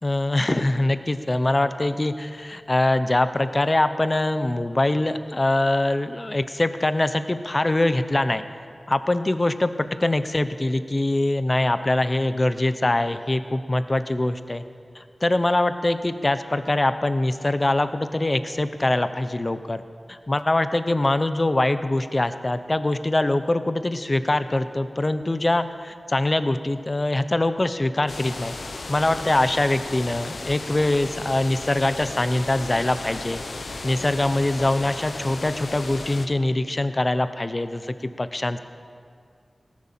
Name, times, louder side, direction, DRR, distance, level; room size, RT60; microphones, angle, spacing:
voice 1, 0.0-8.4 8.9-14.6 14.9-19.8 20.1-28.5 28.9-33.4 33.8-38.6, left 2 dB, 30° left, 11 dB, 0.7 m, -23 dB
sound 1, 28.1-36.3, left 3 dB, 75° left, 1.1 m, -35 dB
18.0 x 10.5 x 7.4 m, 2.2 s
wide cardioid pair, 85°, 0 cm